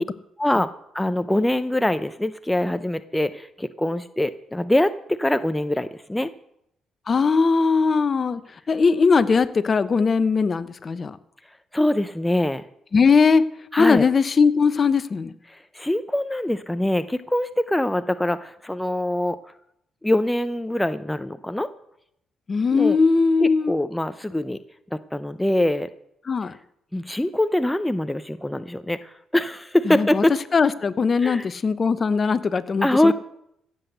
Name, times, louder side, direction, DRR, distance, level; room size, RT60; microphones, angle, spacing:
voice 1, 0.4-6.3 11.7-12.6 13.7-14.1 15.5-19.4 20.0-21.7 22.7-23.0 23.4-24.6 24.9-25.9 26.9-30.3 31.2-31.5 32.8-33.1, left 1 dB, 10° left, 12 dB, 0.6 m, -23 dB
voice 2, 7.1-8.4 8.7-11.2 12.9-13.4 13.8-15.3 22.5-23.7 26.3-26.6 29.9-30.2 30.5-33.1, left 5 dB, 40° left, 14 dB, 0.9 m, -20 dB
15.5 x 7.9 x 8.0 m, 0.76 s
cardioid pair, 90°, 0 cm